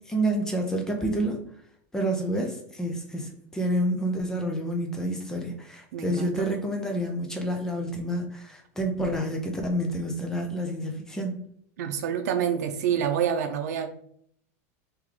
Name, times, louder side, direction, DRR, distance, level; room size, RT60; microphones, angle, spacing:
voice 1, 0.1-1.4 1.9-11.4, right 1 dB, 5° left, 2 dB, 0.5 m, -29 dB
voice 2, 5.9-6.4 11.8-13.9, right 8 dB, 80° right, 7 dB, 0.6 m, -27 dB
3.6 x 3.1 x 3.2 m, 0.65 s
supercardioid pair, 155°, 8 cm